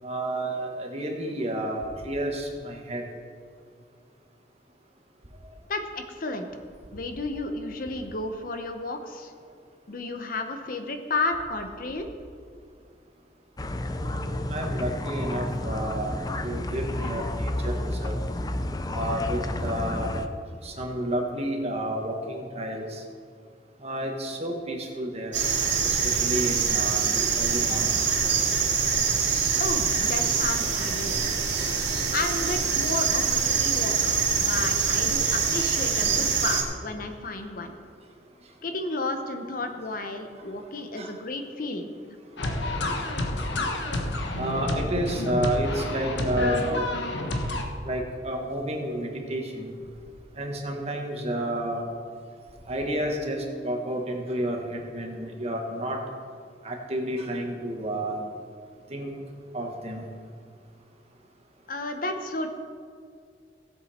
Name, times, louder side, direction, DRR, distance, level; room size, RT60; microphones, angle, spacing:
voice 1, 0.0-3.0 13.9-18.2 18.9-20.1 20.6-23.0 23.8-25.3 25.8-28.0 41.0-41.1 44.4-46.9 47.8-49.7 50.4-51.9 52.7-56.0 56.6-58.3 58.9-59.1 59.5-60.1, right 1 dB, 35° right, 1 dB, 1.5 m, -31 dB
voice 2, 5.7-6.5 6.9-9.3 9.9-12.1 29.6-31.2 32.1-37.7 38.6-41.9 61.7-62.5, left 2 dB, 50° left, 6 dB, 0.9 m, -32 dB
sound 1, 13.6-20.3, left 1 dB, 20° left, 0.5 m, -31 dB
sound 2, 25.3-36.6, right 6 dB, 80° right, 2.3 m, -24 dB
sound 3, 42.4-47.6, left 1 dB, 75° left, 1.2 m, -29 dB
17.0 x 7.9 x 4.3 m, 2.2 s
head